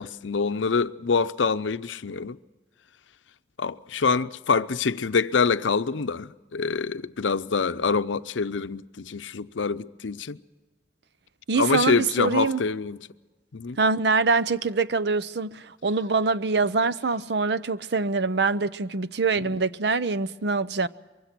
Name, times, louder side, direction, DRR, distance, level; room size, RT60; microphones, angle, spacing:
voice 1, 0.0-2.4 3.6-10.4 11.5-13.0 13.5-13.8 19.4-19.7, left 5 dB, 90° left, 0.6 m, -26 dB
voice 2, 11.5-12.6 13.8-20.9, right 4 dB, 60° right, 0.6 m, -24 dB
24.5 x 23.0 x 6.0 m
head